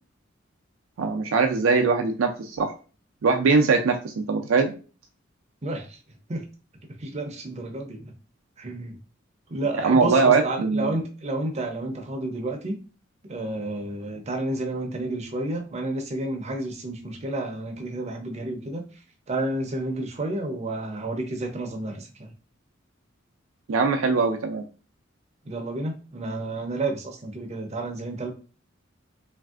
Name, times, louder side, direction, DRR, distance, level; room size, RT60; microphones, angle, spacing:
voice 1, 1.0-2.7 3.2-4.7 9.8-10.9 23.7-24.6, right 4 dB, 90° right, 4 dB, 0.4 m, -21 dB
voice 2, 5.6-6.0 6.3-6.4 7.0-8.1 8.6-9.0 9.5-12.8 13.2-18.8 19.3-22.3 25.5-28.3, right 2 dB, 35° right, 4 dB, 0.5 m, -31 dB
3.2 x 2.5 x 2.4 m, 0.36 s
head